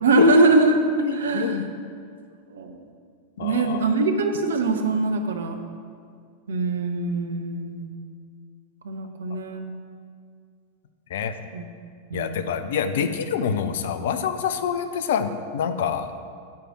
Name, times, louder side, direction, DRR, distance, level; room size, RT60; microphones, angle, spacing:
voice 1, 0.0-0.8 1.1-1.6 2.5-2.8 3.4-5.6 6.5-7.9 8.8-9.7 11.5-11.6 12.1-12.4, right 2 dB, 65° right, 5 dB, 0.9 m, -22 dB
voice 2, 1.0-1.6 3.4-3.9 11.1-11.4 12.1-16.1, left 7 dB, 55° left, 9 dB, 0.6 m, -26 dB
9.0 x 5.1 x 7.4 m, 2.1 s
figure-of-eight pair, 90°, 0 cm